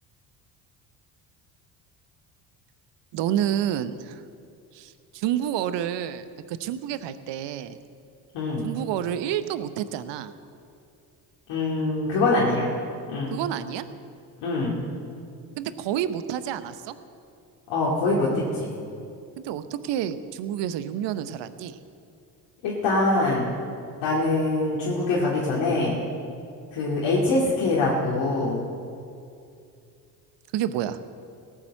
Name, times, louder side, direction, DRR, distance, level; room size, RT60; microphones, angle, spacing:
voice 1, 3.1-4.2 4.7-7.8 8.6-10.3 13.3-13.9 15.6-16.9 19.4-21.8 30.5-31.0, right 10 dB, 60° right, 12 dB, 1.0 m, -29 dB
voice 2, 8.3-8.7 11.5-12.7 13.1-13.3 14.4-14.8 17.7-18.7 22.6-23.5 24.0-26.0 26.7-28.6, left 2 dB, 60° left, -5 dB, 2.8 m, -24 dB
17.5 x 7.4 x 7.7 m, 2.4 s
hypercardioid pair, 60°, 49 cm